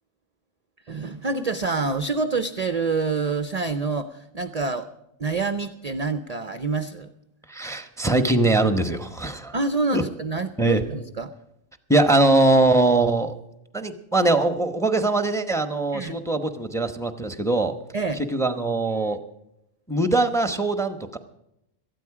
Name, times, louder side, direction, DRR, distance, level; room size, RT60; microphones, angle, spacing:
voice 1, 0.9-4.9 5.2-7.1 9.5-11.3 15.9-16.2 17.9-18.2, right 4 dB, 40° right, 11 dB, 0.6 m, -27 dB
voice 2, 7.5-9.5 9.9-10.0 10.6-10.8 11.9-13.4 13.7-17.8 18.2-19.2 19.9-21.2, right 2 dB, 5° left, 9 dB, 0.8 m, -21 dB
18.5 x 13.0 x 4.8 m, 0.83 s
omnidirectional pair, 1.3 m